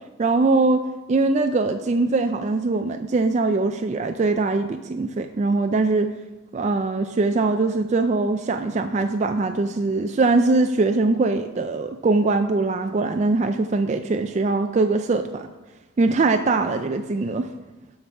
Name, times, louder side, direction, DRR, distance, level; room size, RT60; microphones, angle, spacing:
voice 1, 0.2-6.1 6.5-15.5 16.0-17.5, right 3 dB, 35° right, 7 dB, 0.3 m, -22 dB
7.0 x 5.9 x 5.4 m, 1.1 s
head